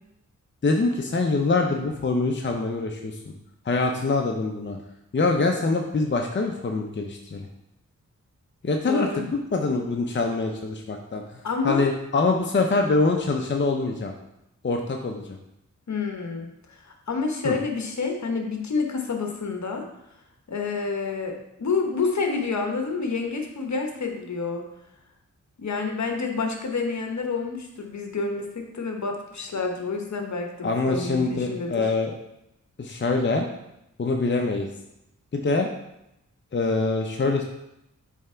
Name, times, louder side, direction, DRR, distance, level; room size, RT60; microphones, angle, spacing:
voice 1, 0.6-3.3 3.6-4.8 5.1-7.5 8.6-11.2 11.6-14.1 14.6-15.4 17.4-17.6 30.6-32.1 32.8-33.5 34.0-34.7 35.3-35.7 36.5-37.4, left 3 dB, 35° left, 2 dB, 0.7 m, -24 dB
voice 2, 8.9-9.3 11.4-11.9 15.9-16.8 17.1-19.8 20.5-24.6 25.6-31.9, left 4 dB, 60° left, 3 dB, 1.1 m, -28 dB
7.3 x 3.4 x 4.4 m, 0.84 s
cardioid pair, 55°, 31 cm